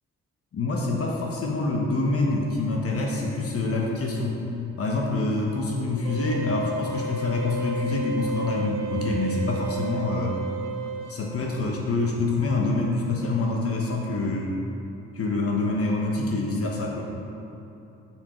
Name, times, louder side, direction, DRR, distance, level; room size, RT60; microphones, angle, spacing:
voice 1, 0.5-4.4 4.8-10.3 11.1-14.5 15.1-17.0, left 2 dB, 50° left, -1 dB, 1.1 m, -26 dB
sound 1, 6.0-11.1, right 3 dB, 90° right, 0.9 m, -32 dB
9.2 x 4.7 x 4.4 m, 2.9 s
cardioid pair, 90°, 30 cm